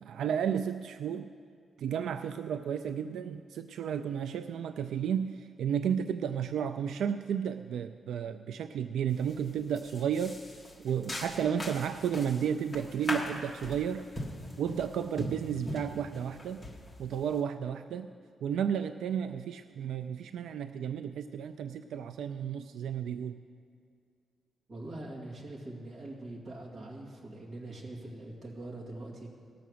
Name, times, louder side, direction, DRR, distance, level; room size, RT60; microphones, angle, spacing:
voice 1, 0.0-1.3 1.8-10.4 10.8-14.0 14.6-16.6 17.0-18.1 18.4-23.4, right 8 dB, 90° right, 10 dB, 0.3 m, -32 dB
sound 1, 9.1-9.4 9.7-17.4, left 1 dB, 15° left, 1.3 m, -40 dB
voice 2, 24.7-29.3, right 2 dB, 35° right, -5 dB, 2.0 m, -43 dB
18.5 x 6.8 x 6.2 m, 2.2 s
wide cardioid pair, 165°, 0 cm